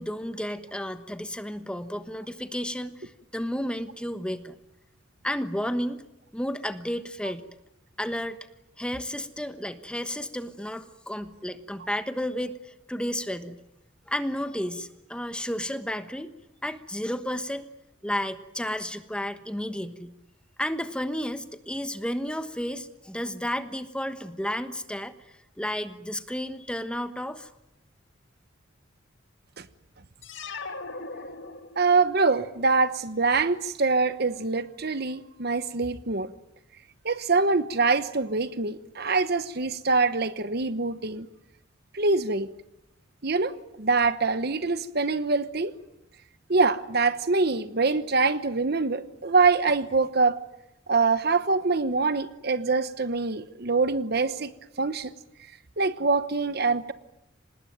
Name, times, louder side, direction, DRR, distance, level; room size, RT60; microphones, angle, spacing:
voice 1, 0.0-4.6 5.2-6.0 6.3-7.4 8.0-8.4 8.8-13.6 14.1-16.3 16.6-17.7 18.0-20.1 20.6-25.1 25.6-27.5, equal, 5° left, 9 dB, 1.2 m, -32 dB
sound 1, 30.2-32.1, left 3 dB, 65° left, 2.1 m, -38 dB
voice 2, 31.8-36.3 37.0-41.3 41.9-42.5 43.2-45.7 46.5-50.4 50.9-54.5 54.8-55.1 55.8-56.9, right 4 dB, 50° right, 13 dB, 1.0 m, -24 dB
25.5 x 20.0 x 9.2 m, 0.87 s
head